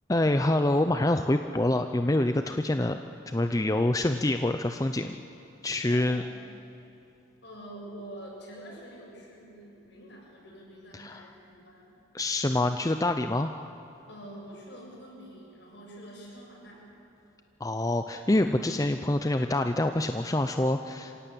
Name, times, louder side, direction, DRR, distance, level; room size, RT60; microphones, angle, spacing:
voice 1, 0.1-5.2 5.6-6.2 10.9-11.3 12.1-13.5 17.6-21.1, left 1 dB, 15° left, 7 dB, 0.5 m, -26 dB
voice 2, 5.9-6.4 7.4-12.0 14.1-16.9, right 1 dB, 65° left, -3 dB, 7.7 m, -46 dB
26.5 x 17.0 x 8.7 m, 2.8 s
head